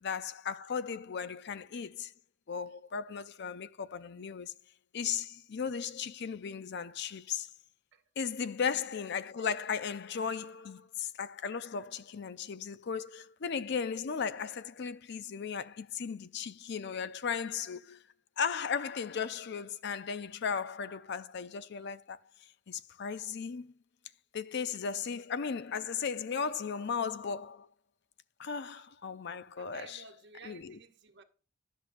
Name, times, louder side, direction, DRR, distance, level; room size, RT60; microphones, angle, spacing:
voice 1, 0.0-2.1 2.5-4.5 4.9-7.5 8.2-18.0 18.4-22.2 22.7-23.7 24.3-27.7 28.4-30.0 30.4-30.8, left 6 dB, 60° left, 0.5 m, -36 dB
voice 2, 29.6-31.2, right 4 dB, 60° right, 1.0 m, -53 dB
10.0 x 6.5 x 2.5 m
head